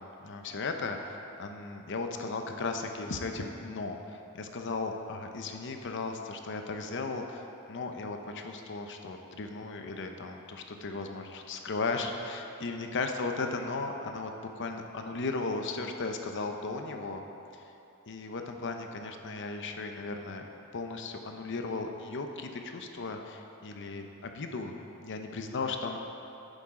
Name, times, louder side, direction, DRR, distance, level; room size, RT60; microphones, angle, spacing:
voice 1, 0.0-17.2 18.1-20.5 20.7-26.0, left 3 dB, 55° left, 5 dB, 0.7 m, -36 dB
11.0 x 9.0 x 3.7 m, 2.9 s
head